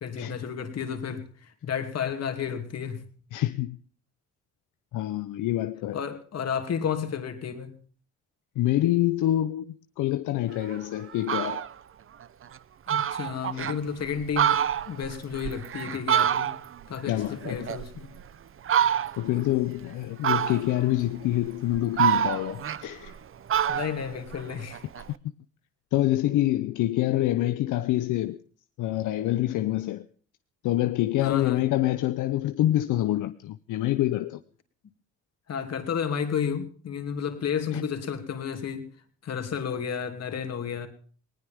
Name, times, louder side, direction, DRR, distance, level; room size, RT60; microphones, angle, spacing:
voice 1, 0.0-3.1 5.9-7.8 12.9-16.6 16.9-18.1 23.7-24.8 31.2-31.6 35.5-38.9 39.2-40.9, left 7 dB, 55° left, 2.8 m, -32 dB
voice 2, 3.3-3.8 4.9-6.0 8.6-11.6 13.5-13.7 17.1-17.7 19.2-23.1 25.1-25.3 25.9-28.4 28.8-30.1 30.6-34.4 37.7-37.8, left 14 dB, 85° left, 0.8 m, -26 dB
Fowl, 10.6-10.8 11.1-11.7 12.2-12.3 12.6-12.7 12.9-13.8 14.2-16.8 17.2-18.2 18.7-19.3 20.2-20.9 21.5-23.2 23.5-25.1, right 9 dB, 45° right, 0.8 m, -26 dB
19.5 x 18.5 x 3.6 m
cardioid pair, 90°, 30 cm